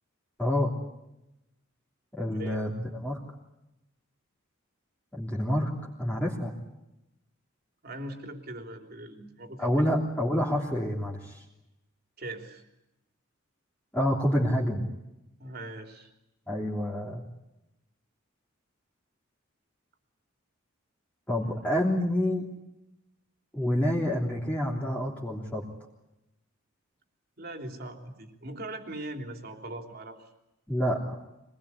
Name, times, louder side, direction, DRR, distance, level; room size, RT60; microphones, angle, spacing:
voice 1, 0.4-0.7 2.1-3.2 5.1-5.7 6.0-6.5 9.6-11.4 13.9-14.9 16.5-17.2 21.3-22.5 23.5-25.6 30.7-31.2, equal, 10° left, -4 dB, 3.2 m, -28 dB
voice 2, 2.3-2.6 7.8-9.9 12.2-12.6 15.4-16.1 21.4-21.6 27.4-30.3, right 1 dB, 50° right, 4 dB, 3.6 m, -40 dB
25.0 x 21.0 x 9.8 m, 0.90 s
head